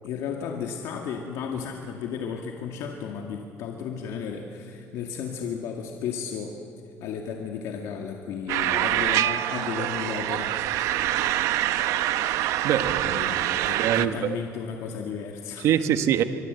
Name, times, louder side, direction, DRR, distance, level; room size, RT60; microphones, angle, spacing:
voice 1, 0.0-6.6 7.0-11.2 13.0-15.7, left 7 dB, 80° left, 2 dB, 2.1 m, -34 dB
sound 1, 8.5-14.1, right 13 dB, 85° right, 0.9 m, -25 dB
voice 2, 12.6-13.2 13.7-14.4 15.6-16.2, right 10 dB, 70° right, 9 dB, 1.4 m, -24 dB
25.5 x 22.0 x 8.2 m, 2.8 s
cardioid pair, 130°, 5 cm